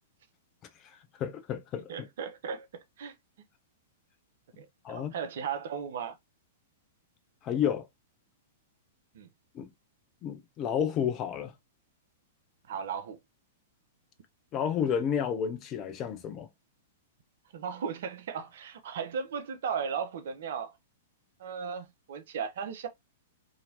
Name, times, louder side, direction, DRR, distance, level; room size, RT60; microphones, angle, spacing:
voice 1, 1.2-2.1 4.8-5.1 7.4-7.9 9.5-9.7 10.2-11.5 14.5-16.5, left 8 dB, 30° left, 0.6 m, -31 dB
voice 2, 1.9-3.1 4.6-6.2 9.1-9.3 12.7-13.2 17.5-20.7 21.4-22.9, right 6 dB, 55° right, 0.6 m, -36 dB
2.8 x 2.8 x 2.8 m
figure-of-eight pair, 105°, 0 cm